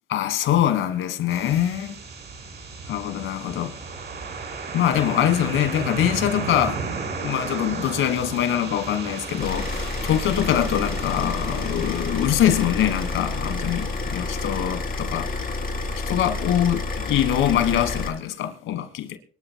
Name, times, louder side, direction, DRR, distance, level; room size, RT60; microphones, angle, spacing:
voice 1, 0.1-1.9 2.9-3.8 4.7-6.8 7.2-15.3 16.1-19.2, left 11 dB, 85° left, 1.5 m, -23 dB
sound 1, 1.3-15.2, right 4 dB, 60° right, 5.1 m, -35 dB
Car / Idling, 9.4-18.1, left 3 dB, 45° left, 3.8 m, -29 dB
25.0 x 12.5 x 2.2 m
cardioid pair, 90°, 20 cm